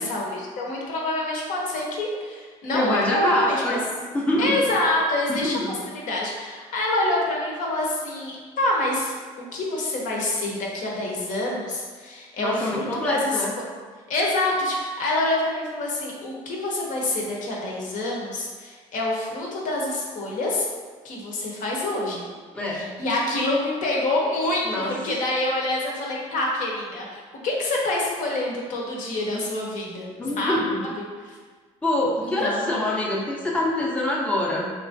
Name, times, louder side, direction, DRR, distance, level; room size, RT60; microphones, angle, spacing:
voice 1, 0.0-3.8 4.4-13.4 14.1-20.7 21.0-22.2 22.7-30.1 30.4-30.6 31.3-31.4 32.4-32.7, left 1 dB, 65° left, -2 dB, 0.7 m, -26 dB
voice 2, 2.7-3.8 4.1-4.5 5.3-5.7 12.4-13.5 22.5-22.9 24.6-24.9 30.2-30.8 31.8-34.7, left 1 dB, 10° left, -4 dB, 0.5 m, -25 dB
3.0 x 2.4 x 2.5 m, 1.5 s
supercardioid pair, 90°, 15 cm